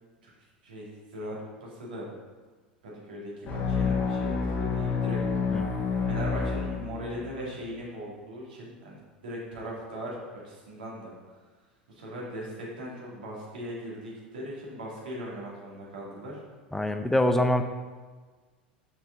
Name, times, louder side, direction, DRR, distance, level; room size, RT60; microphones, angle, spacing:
voice 1, 0.6-1.4 1.6-2.1 2.8-5.2 6.1-9.0 9.2-10.2 10.4-11.1 11.9-16.4, equal, 70° right, -5 dB, 2.3 m, -39 dB
sound 1, 3.5-7.3, left 5 dB, 35° left, 1.2 m, -28 dB
voice 2, 16.7-17.6, left 1 dB, 5° left, 7 dB, 0.6 m, -24 dB
7.0 x 5.8 x 3.8 m, 1.4 s
figure-of-eight pair, 80°, 5 cm